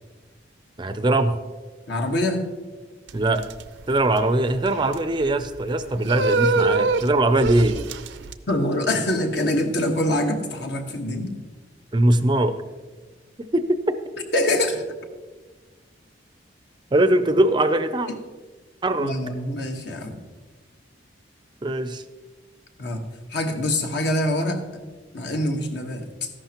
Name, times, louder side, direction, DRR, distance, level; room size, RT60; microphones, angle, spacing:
voice 1, 0.8-1.4 3.1-3.4 3.9-7.8 11.9-12.5 13.5-13.8 16.9-18.1 18.8-19.2 21.6-22.0, right 1 dB, 25° right, 10 dB, 0.5 m, -21 dB
voice 2, 1.9-2.5 8.5-11.4 14.3-14.8 18.1-18.2 19.0-20.2 22.8-23.0 23.3-24.6 25.1-26.3, left 1 dB, 65° left, 3 dB, 1.3 m, -24 dB
sound 1, 3.1-8.3, right 3 dB, 75° right, 0.6 m, -26 dB
13.5 x 11.5 x 3.0 m, 1.4 s
head